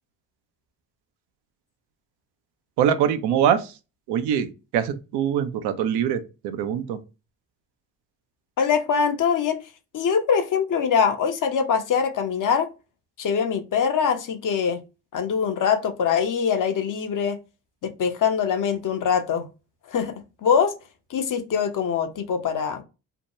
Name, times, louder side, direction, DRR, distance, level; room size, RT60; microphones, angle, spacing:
voice 1, 2.8-3.7 4.1-4.5 4.7-7.0, right 9 dB, 80° right, 0.5 m, -23 dB
voice 2, 8.6-9.6 9.9-12.7 13.2-14.8 15.1-17.4 17.8-19.5 19.9-20.1 20.4-20.7 21.1-22.8, left 6 dB, 50° left, 0.7 m, -23 dB
2.7 x 2.2 x 2.8 m
hypercardioid pair, 45°, 40 cm